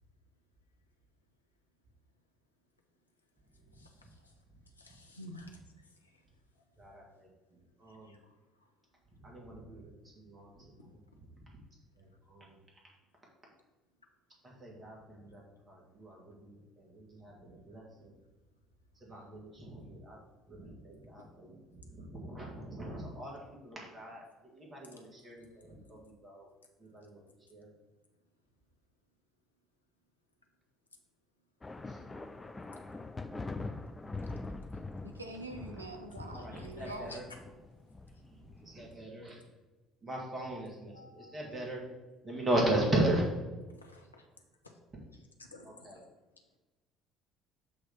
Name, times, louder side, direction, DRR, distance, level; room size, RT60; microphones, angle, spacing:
voice 1, 3.8-4.1 6.8-8.2 9.2-11.3 12.0-12.6 14.4-15.4 15.7-18.1 19.0-20.2 20.5-26.5 26.8-27.2 27.5-27.7 31.9-32.0 36.1-37.3 38.3-39.4 40.0-41.8 42.2-43.3 45.6-46.0, right 1 dB, 25° right, -2 dB, 2.0 m, -38 dB
voice 2, 4.8-5.5 8.1-8.2 36.8-37.4 40.9-41.8 45.5-45.7, left 1 dB, 85° left, 2 dB, 0.7 m, -50 dB
sound 1, 31.6-38.9, left 3 dB, 20° left, 0.5 m, -43 dB
voice 3, 35.0-37.2, right 2 dB, 85° right, 4 dB, 0.6 m, -44 dB
7.7 x 3.2 x 5.7 m, 1.2 s
figure-of-eight pair, 55°, 0 cm